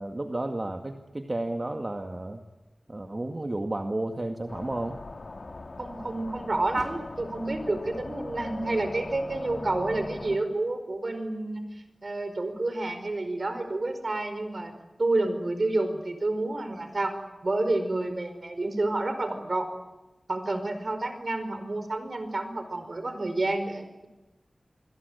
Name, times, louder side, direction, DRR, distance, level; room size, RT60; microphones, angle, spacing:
voice 1, 0.0-2.4 2.9-5.0, right 1 dB, 40° right, 5 dB, 2.1 m, -32 dB
sound 1, 4.5-10.4, left 2 dB, 65° left, 2.9 m, -40 dB
voice 2, 5.8-11.7 12.0-14.7 15.0-17.1 17.4-19.7 20.3-24.1, right 2 dB, 60° right, 9 dB, 5.0 m, -29 dB
28.0 x 22.0 x 8.3 m, 1.1 s
wide cardioid pair, 50°, 0 cm